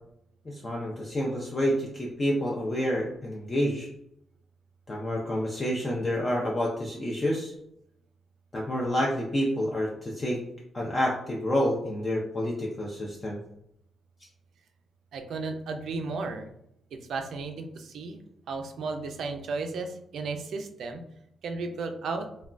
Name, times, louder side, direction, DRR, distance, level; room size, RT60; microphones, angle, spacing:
voice 1, 0.5-3.9 4.9-7.5 8.5-10.4 10.7-13.4, equal, 25° left, -3 dB, 0.4 m, -28 dB
voice 2, 15.1-16.5 16.9-18.2 18.5-21.0 21.4-22.3, right 3 dB, 70° right, 5 dB, 0.3 m, -34 dB
3.2 x 2.2 x 2.4 m, 0.76 s
wide cardioid pair, 155°, 0 cm